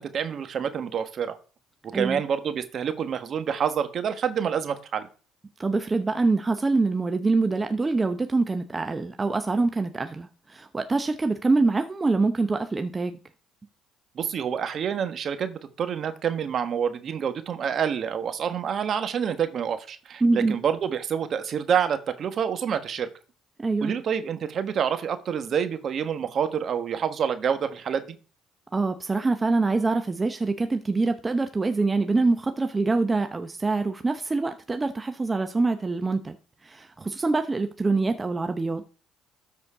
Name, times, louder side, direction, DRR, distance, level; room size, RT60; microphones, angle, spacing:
voice 1, 0.0-1.4 1.9-5.1 14.1-23.1 23.8-28.1, right 7 dB, 50° right, 1.3 m, -27 dB
voice 2, 5.6-13.2 20.2-20.6 23.6-23.9 28.7-36.4 36.6-38.8, right 3 dB, 25° right, 0.8 m, -25 dB
13.0 x 4.4 x 4.9 m
hypercardioid pair, 65°, 0 cm